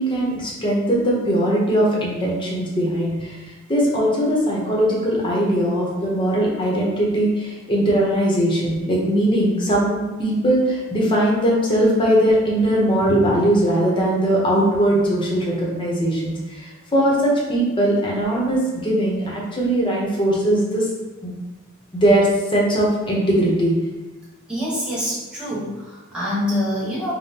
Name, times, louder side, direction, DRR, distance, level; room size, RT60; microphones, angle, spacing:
voice 1, 0.0-3.4 3.7-20.9 21.2-21.3 21.9-23.7, right 1 dB, 25° left, -4 dB, 0.8 m, -20 dB
voice 2, 24.5-27.1, left 1 dB, 5° right, -9 dB, 1.1 m, -25 dB
5.1 x 2.1 x 2.8 m, 1.2 s
head